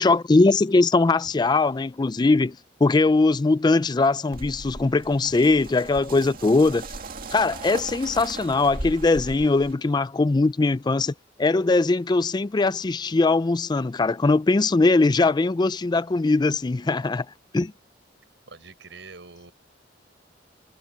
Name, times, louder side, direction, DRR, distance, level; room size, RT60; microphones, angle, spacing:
voice 1, 0.0-2.6 2.8-6.9 7.3-11.1 11.4-17.3 17.5-17.6, left 3 dB, 25° left, 0.4 m, -21 dB
sound 1, 4.3-9.7, right 2 dB, 50° right, 2.3 m, -37 dB
voice 2, 18.5-19.5, right 3 dB, 75° right, 5.9 m, -44 dB
head